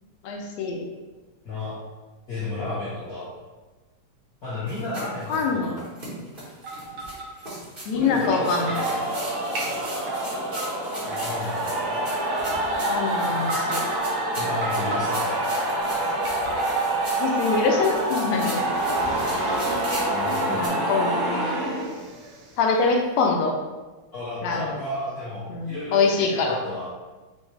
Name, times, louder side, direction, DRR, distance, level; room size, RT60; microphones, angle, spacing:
voice 1, 0.2-0.8 5.3-5.8 7.9-8.8 12.8-13.9 17.2-18.6 20.5-21.6 22.6-23.5 24.4-24.7 25.5-26.6, left 4 dB, 75° left, 1 dB, 1.7 m, -24 dB
voice 2, 1.4-1.8 2.3-3.3 4.4-5.8 7.9-8.9 11.1-12.0 14.3-15.4 20.1-20.7 24.1-26.9, left 2 dB, 55° left, -10 dB, 1.0 m, -33 dB
sound 1, 4.7-20.7, right 1 dB, 45° right, 0.7 m, -39 dB
sound 2, 6.6-7.5 8.3-8.4 8.7-9.1 9.6-10.7 10.9-11.7 12.4-12.8 13.4-14.0 14.6-15.5 16.1-17.0 17.5-17.8 18.1-20.0, right 3 dB, 60° right, 1.5 m, -33 dB
sound 3, 8.3-22.4, right 1 dB, 80° right, 1.3 m, -27 dB
6.3 x 2.6 x 3.2 m, 1.2 s
omnidirectional pair, 3.4 m